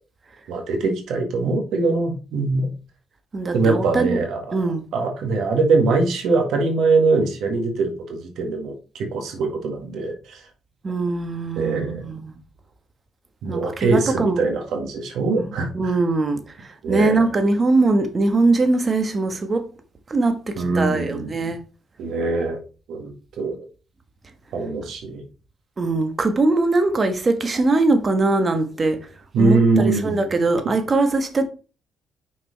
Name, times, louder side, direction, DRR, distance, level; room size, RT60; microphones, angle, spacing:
voice 1, 0.5-2.7 3.5-4.6 4.9-10.4 11.6-12.1 13.4-15.7 16.8-17.2 20.6-21.3 22.0-22.6 22.9-23.7 24.5-25.2 29.3-30.2, right 3 dB, 75° right, 1.8 m, -22 dB
voice 2, 3.3-4.2 4.5-4.8 10.8-12.3 13.5-14.4 15.3-15.5 15.7-19.7 20.1-21.6 25.8-29.1 29.4-31.4, right 3 dB, 35° right, 1.3 m, -21 dB
6.1 x 4.4 x 4.1 m
cardioid pair, 90°, 0 cm